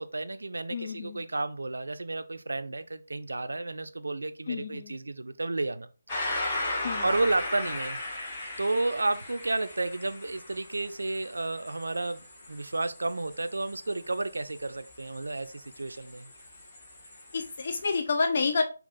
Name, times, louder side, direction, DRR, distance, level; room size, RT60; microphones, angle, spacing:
voice 1, 0.0-5.9 6.2-6.5 7.0-8.0 8.6-16.3, right 2 dB, 70° right, 0.4 m, -32 dB
voice 2, 0.7-1.2 4.5-5.0 6.8-7.1 17.3-18.6, left 4 dB, 45° left, 0.4 m, -29 dB
sound 1, 6.1-18.0, left 2 dB, 25° left, 1.4 m, -38 dB
5.3 x 2.4 x 2.5 m
figure-of-eight pair, 150°, 0 cm